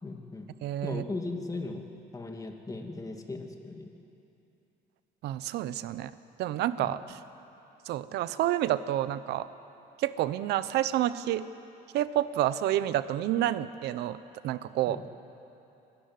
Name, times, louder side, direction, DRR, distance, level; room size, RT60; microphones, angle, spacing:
voice 1, 0.0-0.5 0.8-1.9 2.1-3.9 6.8-6.9 14.9-15.0, left 3 dB, 20° left, 3 dB, 2.2 m, -37 dB
voice 2, 0.6-1.0 5.2-6.1 6.4-7.0 7.9-9.5 10.0-11.4 11.9-14.2 14.4-15.1, right 13 dB, 80° right, 14 dB, 0.8 m, -29 dB
25.0 x 13.0 x 9.5 m, 2.9 s
cardioid pair, 110°, 17 cm